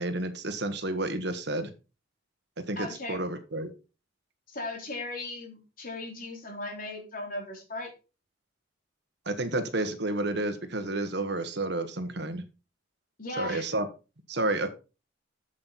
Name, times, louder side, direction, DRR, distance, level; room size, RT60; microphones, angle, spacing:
voice 1, 0.0-1.7 2.7-3.7 9.2-12.4 13.4-13.9 14.3-14.7, right 2 dB, 60° right, 9 dB, 1.3 m, -30 dB
voice 2, 2.8-3.2 4.5-7.9 13.2-13.6, left 2 dB, 50° left, 2 dB, 3.2 m, -37 dB
8.6 x 7.7 x 4.1 m, 0.31 s
head